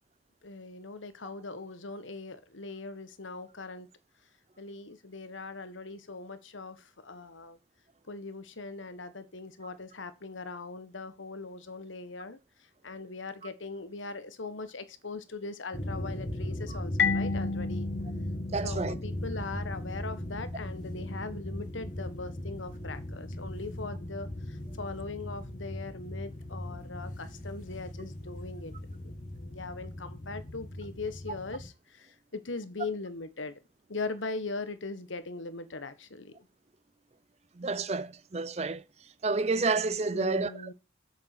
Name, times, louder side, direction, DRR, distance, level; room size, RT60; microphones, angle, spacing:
voice 1, 0.4-3.9 4.6-7.6 8.1-12.4 12.8-17.9 18.6-33.6 33.9-36.5 40.1-40.7, left 3 dB, 90° left, 1.4 m, -40 dB
sound 1, 15.7-31.7, left 1 dB, 40° left, 2.0 m, -38 dB
Marimba xylophone, 17.0-19.6, left 5 dB, 65° left, 1.0 m, -32 dB
voice 2, 18.5-19.0 37.6-38.8 39.2-40.7, right 3 dB, 35° right, 0.5 m, -30 dB
8.1 x 6.6 x 6.7 m
head